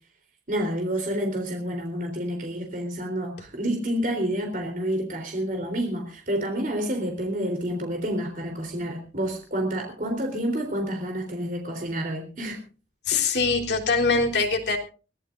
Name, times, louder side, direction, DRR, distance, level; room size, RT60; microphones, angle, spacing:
voice 1, 0.5-12.6 13.1-13.4, equal, 50° right, 3 dB, 3.7 m, -29 dB
voice 2, 13.0-14.8, left 4 dB, 75° left, 1 dB, 3.5 m, -23 dB
23.5 x 17.0 x 2.6 m, 0.37 s
head